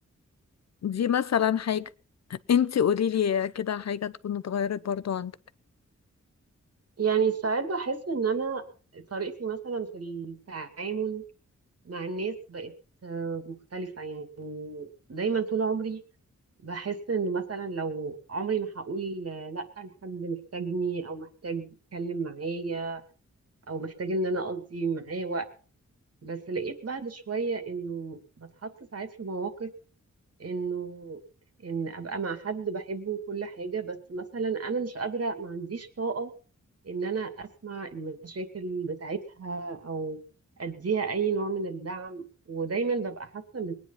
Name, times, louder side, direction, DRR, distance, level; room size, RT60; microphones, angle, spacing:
voice 1, 0.8-1.9 2.3-5.3, left 8 dB, 65° left, 0.7 m, -26 dB
voice 2, 7.0-8.6 8.9-11.2 11.8-12.7 13.0-16.0 16.6-21.7 21.9-23.0 23.7-25.5 26.2-29.7 30.4-31.2 31.6-36.3 36.8-40.2 40.6-43.7, right 4 dB, 55° right, 2.5 m, -32 dB
21.0 x 9.8 x 5.7 m
wide cardioid pair, 115°, 29 cm